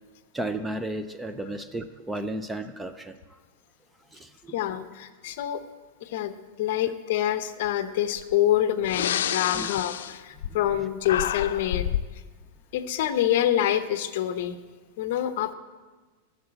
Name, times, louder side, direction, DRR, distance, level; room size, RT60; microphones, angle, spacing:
voice 1, 0.3-3.2 4.1-4.6 9.6-9.7, right 1 dB, 5° right, 10 dB, 0.4 m, -33 dB
voice 2, 4.5-5.6 6.0-11.9 12.7-14.6 15.0-15.5, left 11 dB, 55° left, 11 dB, 0.8 m, -26 dB
Breathing, 8.2-8.3 8.8-10.8 11.0-12.1, left 10 dB, 85° left, 0.5 m, -29 dB
12.0 x 6.9 x 8.0 m, 1.3 s
supercardioid pair, 165°, 0 cm